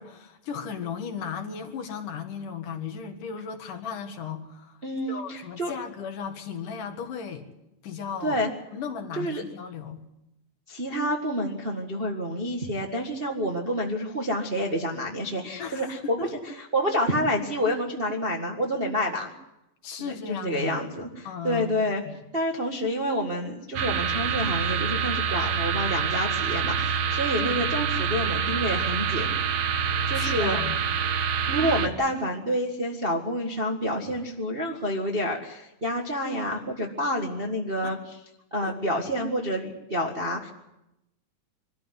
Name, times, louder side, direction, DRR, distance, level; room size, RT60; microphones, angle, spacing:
voice 1, 0.0-4.8 5.1-7.4 7.8-8.4 8.7-10.0 15.6-16.3 19.8-20.8 21.2-21.7 22.0-22.2 29.9-30.8 37.8-37.9 38.6-38.8, left 7 dB, 70° left, 5 dB, 3.3 m, -36 dB
voice 2, 4.8-5.7 8.2-8.5 9.2-9.4 10.7-19.3 20.0-22.0 22.3-29.4 30.1-30.6 31.5-38.2 38.5-40.5, equal, 30° right, 0 dB, 1.1 m, -28 dB
sound 1, 23.8-31.9, right 7 dB, 70° right, 2.8 m, -26 dB
24.5 x 13.5 x 9.8 m, 0.90 s
omnidirectional pair, 3.9 m